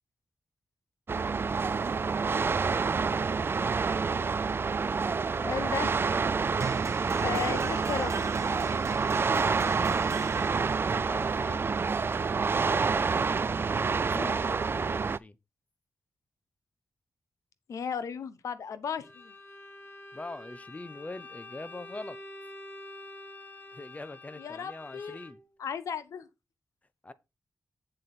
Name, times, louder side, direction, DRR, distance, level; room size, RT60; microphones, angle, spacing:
sound 1, 1.1-15.2, right 5 dB, 45° right, 0.4 m, -28 dB
voice 1, 5.1-5.9 7.2-8.1 14.1-14.4 17.7-19.3 24.4-25.2 25.6-26.3, left 7 dB, 80° left, 0.9 m, -35 dB
sound 2, 6.6-14.6, right 5 dB, 65° right, 1.3 m, -39 dB
voice 2, 9.3-9.8 10.9-11.7 12.5-13.2 14.0-15.4 20.1-22.2 23.7-25.4 27.0-27.1, left 2 dB, 25° left, 1.0 m, -43 dB
Bowed string instrument, 19.0-25.6, left 2 dB, 45° left, 2.9 m, -47 dB
7.9 x 7.4 x 4.3 m
cardioid pair, 50°, 5 cm